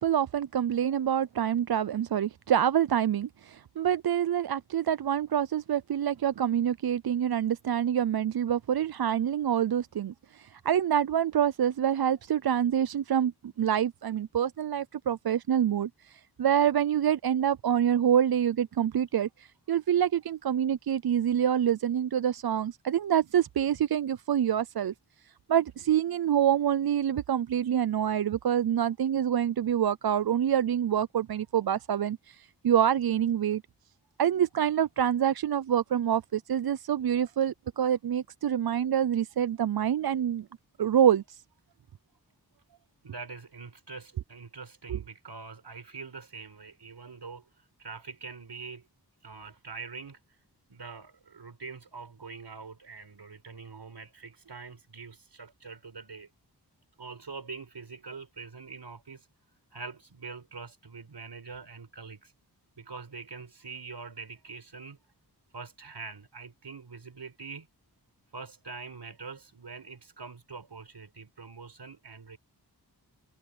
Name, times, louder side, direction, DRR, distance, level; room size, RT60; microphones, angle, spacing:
voice 1, 0.0-13.3 13.6-24.9 25.5-33.6 34.2-40.5 40.8-41.4 44.9-45.0, right 9 dB, 65° right, 0.5 m, -26 dB
voice 2, 43.0-47.4 47.8-48.9 49.2-50.2 50.7-56.3 57.0-59.3 59.7-62.3 62.8-65.0 65.5-67.7 68.3-72.4, right 4 dB, 85° right, 4.9 m, -44 dB
wide cardioid pair, 60°, 40 cm